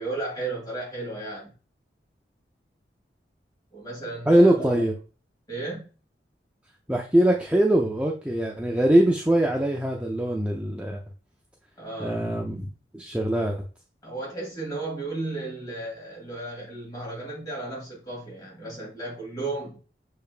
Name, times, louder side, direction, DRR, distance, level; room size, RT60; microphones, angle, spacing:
voice 1, 0.0-1.5 3.7-4.9 5.5-5.8 11.8-12.3 14.0-19.8, right 2 dB, 20° left, -4 dB, 2.7 m, -34 dB
voice 2, 4.3-4.9 6.9-11.0 12.0-12.7 12.9-13.6, right 1 dB, 5° right, 0 dB, 0.4 m, -22 dB
6.7 x 3.3 x 2.4 m, 0.35 s
head